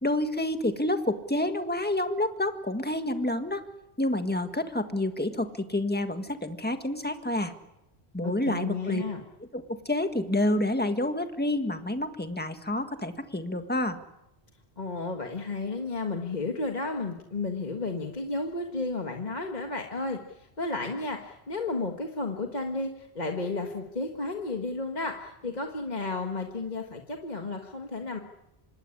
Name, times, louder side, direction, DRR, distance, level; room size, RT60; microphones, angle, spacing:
voice 1, 0.0-3.6 4.0-7.5 8.1-9.0 9.5-14.0, left 1 dB, 10° left, 7 dB, 1.7 m, -28 dB
voice 2, 8.2-9.2 14.8-28.2, left 3 dB, 40° left, 3 dB, 1.7 m, -33 dB
26.0 x 19.5 x 9.9 m, 0.90 s
omnidirectional pair, 1.1 m